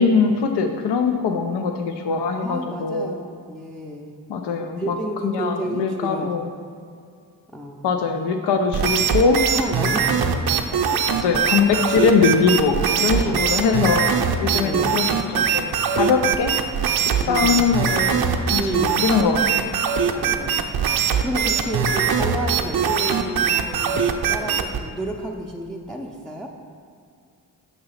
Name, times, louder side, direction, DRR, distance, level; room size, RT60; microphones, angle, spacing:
voice 1, 0.0-3.1 4.3-5.0 5.2-6.5 7.8-9.4 11.1-15.0 15.3-15.7 16.0-16.5 17.1-19.8, left 5 dB, 65° left, 5 dB, 0.6 m, -21 dB
voice 2, 2.4-4.1 4.8-6.3 7.5-7.9 9.5-11.1 13.1-13.4 13.8-13.9 14.5-15.1 17.2-17.7 18.6-19.1 20.1-26.5, right 1 dB, ahead, 0 dB, 0.5 m, -31 dB
sound 1, 8.7-24.8, right 7 dB, 55° right, 0.6 m, -21 dB
6.6 x 2.9 x 5.6 m, 2.2 s
supercardioid pair, 45°, 44 cm